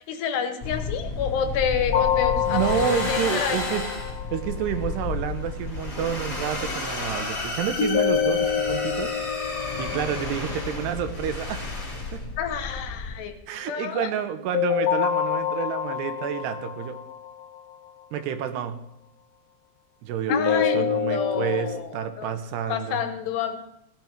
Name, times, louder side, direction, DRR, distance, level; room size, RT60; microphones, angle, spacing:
voice 1, 0.0-3.6 12.4-14.1 20.3-21.9 22.2-22.3 22.7-23.6, left 8 dB, 85° left, 8 dB, 3.2 m, -29 dB
sound 1, 0.6-13.2, left 3 dB, 20° left, 3.3 m, -32 dB
sound 2, 1.9-4.8 7.8-10.8 14.5-17.7 20.3-21.8, left 8 dB, 65° left, 2.5 m, -26 dB
voice 2, 2.5-3.8 4.3-9.1 9.4-9.5 9.8-11.7 12.1-12.2 13.5-17.0 18.1-18.8 20.0-23.0, right 9 dB, 85° right, 9 dB, 3.0 m, -29 dB
16.0 x 10.5 x 4.5 m, 0.81 s
omnidirectional pair, 4.8 m